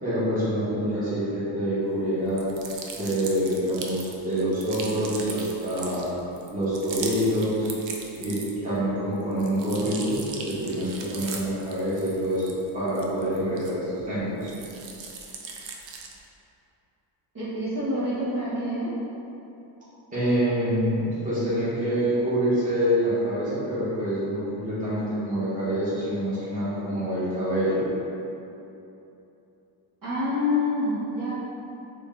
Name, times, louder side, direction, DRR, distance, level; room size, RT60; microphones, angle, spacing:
voice 1, 0.0-2.5 2.9-6.1 6.5-7.7 8.2-14.5 20.1-27.9, equal, 15° right, -12 dB, 1.3 m, -26 dB
sound 1, 2.3-8.8 9.1-14.0 14.4-16.2, right 5 dB, 70° right, 0.6 m, -39 dB
voice 2, 17.3-18.9 30.0-31.3, left 2 dB, 45° right, -11 dB, 1.4 m, -27 dB
3.8 x 2.5 x 3.7 m, 2.9 s
cardioid pair, 100°, 46 cm